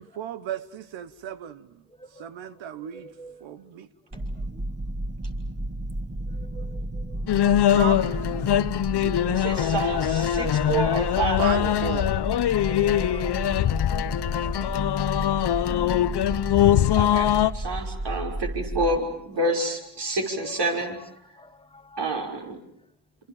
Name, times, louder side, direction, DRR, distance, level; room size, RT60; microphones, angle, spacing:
voice 1, 0.0-1.7 2.2-3.1 3.4-3.9 7.7-8.6 9.0-9.1 11.4-12.2, right 9 dB, 75° right, 13 dB, 1.2 m, -34 dB
voice 2, 2.9-3.4 6.5-7.2 9.5-9.6 12.5-14.7 16.5-16.8 21.9-22.0, right 1 dB, 10° left, 10 dB, 1.4 m, -44 dB
sound 1, 4.1-19.0, right 1 dB, 25° right, 2.6 m, -33 dB
sound 2, 7.3-17.5, left 11 dB, 60° left, 1.0 m, -22 dB
voice 3, 9.3-11.8 17.0-21.0 22.0-22.6, right 2 dB, 60° right, 2 dB, 6.1 m, -28 dB
27.5 x 27.5 x 7.3 m, 0.73 s
supercardioid pair, 55°, 46 cm